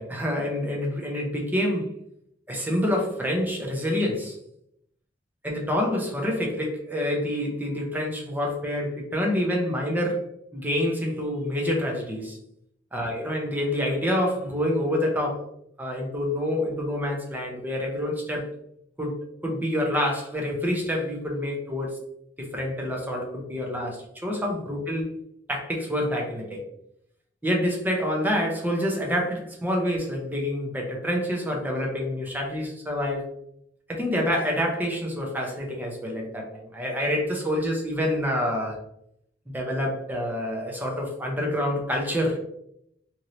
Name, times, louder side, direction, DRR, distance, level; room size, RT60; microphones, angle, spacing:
voice 1, 0.0-1.9 2.5-4.4 5.4-10.2 10.5-12.4 12.9-15.4 15.8-18.4 19.0-19.1 19.4-22.0 22.4-25.1 25.5-26.6 27.4-33.3 33.9-38.8 39.5-42.4, left 1 dB, 10° right, 0 dB, 0.7 m, -27 dB
3.1 x 2.7 x 2.6 m, 0.74 s
head